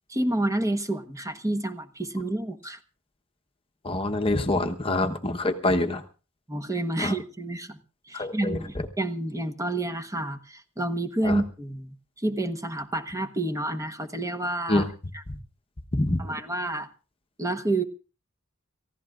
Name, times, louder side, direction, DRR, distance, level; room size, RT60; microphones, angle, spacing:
voice 1, 0.1-2.8 6.5-7.8 8.1-14.8 15.1-15.2 16.2-16.9 17.4-17.8, right 1 dB, 15° right, 8 dB, 1.1 m, -29 dB
voice 2, 3.8-6.0 7.0-7.1 8.1-8.6 11.2-11.3 14.7-14.9 15.9-16.2, left 2 dB, 25° left, 5 dB, 1.0 m, -25 dB
29.5 x 15.5 x 2.5 m, 0.35 s
head